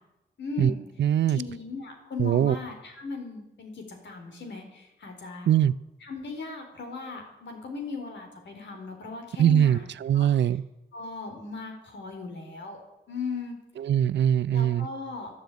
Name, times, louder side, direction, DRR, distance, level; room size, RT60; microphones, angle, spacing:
voice 1, 0.4-0.8 1.3-5.5 6.0-9.8 10.1-10.3 10.9-12.8 13.1-13.6 14.5-15.3, left 4 dB, 85° left, 3 dB, 3.9 m, -37 dB
voice 2, 1.0-1.4 2.2-2.6 5.5-5.7 9.4-10.6 13.8-14.9, right 10 dB, 80° right, 18 dB, 0.5 m, -22 dB
12.5 x 12.0 x 8.3 m, 0.96 s
wide cardioid pair, 170°, 18 cm